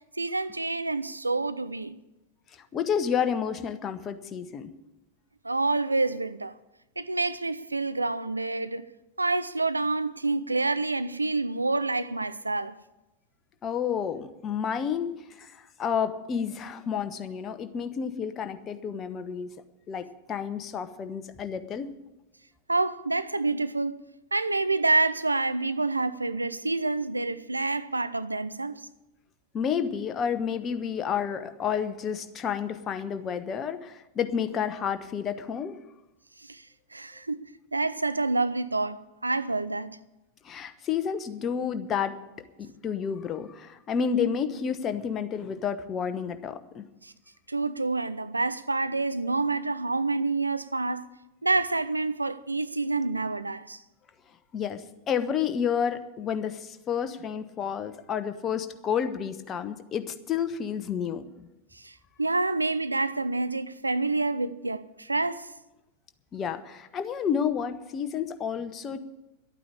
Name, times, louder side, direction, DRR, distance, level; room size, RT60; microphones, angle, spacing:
voice 1, 0.2-2.0 5.4-6.5 7.0-8.9 9.2-12.8 22.7-24.0 24.3-28.9 36.4-36.7 36.9-37.4 37.7-40.0 47.0-47.1 47.5-51.1 51.4-53.8 61.7-65.5, right 3 dB, 80° right, 0.5 m, -28 dB
voice 2, 2.5-4.7 13.6-19.5 19.9-21.9 29.5-35.8 40.4-42.2 42.8-46.8 54.5-61.5 66.3-69.0, left 7 dB, 25° left, 1.0 m, -30 dB
11.5 x 9.0 x 8.6 m
figure-of-eight pair, 90°, 0 cm